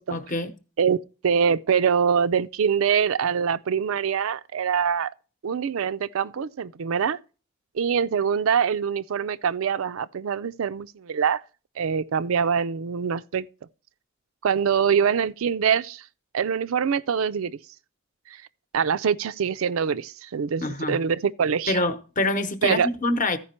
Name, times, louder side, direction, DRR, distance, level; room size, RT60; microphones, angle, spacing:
voice 1, 0.1-0.5 20.6-21.0 21.7-23.4, left 2 dB, 40° left, 0.8 m, -25 dB
voice 2, 1.2-5.1 5.4-7.2 7.7-11.4 11.8-13.5 14.4-16.0 16.3-17.6 18.7-21.8 22.6-22.9, right 7 dB, 75° right, 0.4 m, -24 dB
14.0 x 5.1 x 4.3 m
head